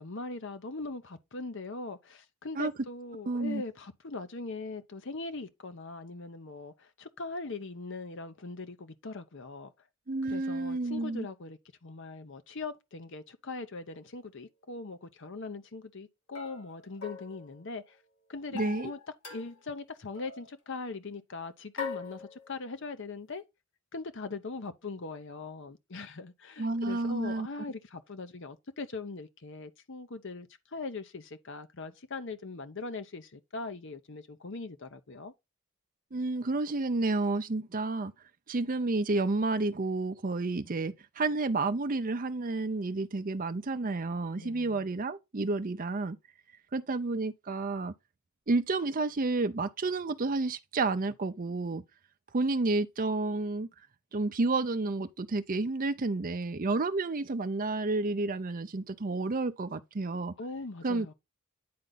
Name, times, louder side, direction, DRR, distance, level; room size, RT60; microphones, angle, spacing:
voice 1, 0.0-9.7 10.3-18.0 18.3-19.0 19.3-23.4 23.9-35.3 44.4-44.9 60.4-61.1, left 3 dB, 55° left, 0.8 m, -41 dB
voice 2, 3.3-3.6 10.1-11.3 18.5-18.9 26.6-27.5 36.1-38.1 38.5-46.2 46.7-47.9 48.5-51.8 52.3-53.7 54.1-60.3 60.8-61.1, right 3 dB, 40° right, 0.6 m, -30 dB
sound 1, 14.0-14.1 16.4-18.0 18.6-19.8 20.1-20.5 21.8-22.8, left 6 dB, 80° left, 2.0 m, -43 dB
9.5 x 4.0 x 3.9 m
head